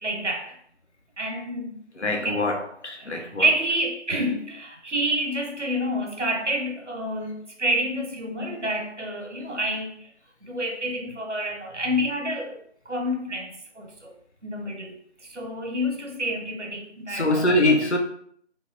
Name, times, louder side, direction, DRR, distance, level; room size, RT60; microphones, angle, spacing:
voice 1, 0.0-0.5 1.2-1.8 2.1-2.4 3.0-10.1 10.4-12.6 12.9-14.1 14.4-14.9 15.2-17.5, equal, 75° right, 1.0 m, -28 dB
voice 2, 2.0-3.4 17.1-18.0, left 1 dB, 70° left, 0.7 m, -23 dB
3.4 x 2.0 x 2.5 m
figure-of-eight pair, 170°, 36 cm